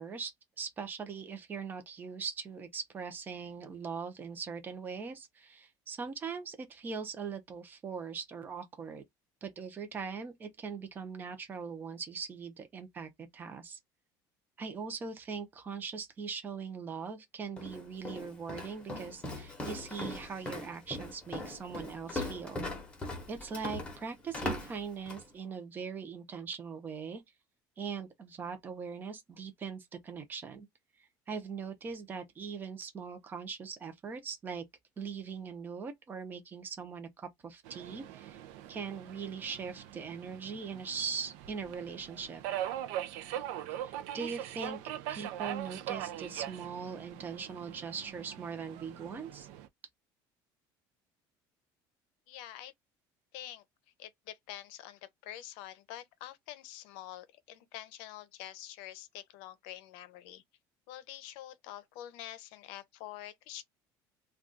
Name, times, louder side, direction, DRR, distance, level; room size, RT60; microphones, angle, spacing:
voice 1, 0.0-9.0 9.4-13.8 14.6-22.6 23.3-27.2 27.8-30.7 31.3-34.6 35.0-38.4 38.7-42.4 43.8-44.8 45.1-49.5, right 5 dB, 20° right, 0.6 m, -41 dB
Walk footsteps, 17.6-25.3, left 1 dB, 10° left, 0.8 m, -40 dB
Subway metro underground, 37.7-49.7, right 11 dB, 90° right, 0.5 m, -41 dB
voice 2, 52.3-52.7 53.3-53.6 54.0-60.4 60.9-63.6, left 13 dB, 85° left, 0.6 m, -46 dB
2.3 x 2.3 x 3.8 m
cardioid pair, 175°, 9 cm